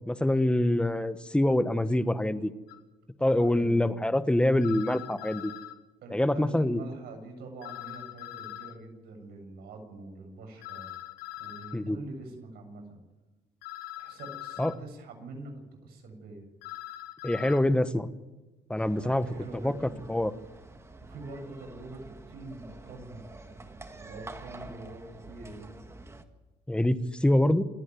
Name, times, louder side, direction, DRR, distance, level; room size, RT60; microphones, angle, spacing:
voice 1, 0.1-2.5 3.2-5.5 6.1-6.8 11.7-12.0 14.6-14.7 17.2-18.1 18.7-19.3 19.6-19.7 20.1-20.3 26.7-27.6, left 1 dB, 5° left, 11 dB, 1.2 m, -25 dB
sound 1, 2.7-2.8 4.6-5.7 7.6-8.7 10.6-11.8 13.6-14.8 16.6-17.6, left 14 dB, 80° left, 1.5 m, -42 dB
voice 2, 3.4-3.8 6.0-10.9 11.4-13.0 14.0-16.5 18.9-19.9 21.0-23.2 24.0-25.7, right 2 dB, 70° right, 4 dB, 7.5 m, -44 dB
sound 2, 18.8-26.3, right 2 dB, 15° right, 1.9 m, -48 dB
28.5 x 9.7 x 9.4 m, 1.1 s
cardioid pair, 110°, 17 cm